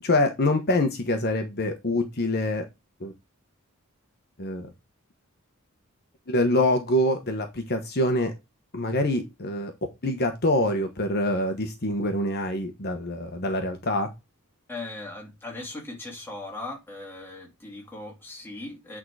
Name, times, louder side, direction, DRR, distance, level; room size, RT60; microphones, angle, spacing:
voice 1, 0.0-2.6 3.0-3.1 4.4-4.7 6.3-8.3 8.7-9.7 10.0-14.1, left 1 dB, 50° left, 1.1 m, -25 dB
voice 2, 14.7-19.0, left 2 dB, 10° left, 2.3 m, -38 dB
8.8 x 3.8 x 4.8 m
head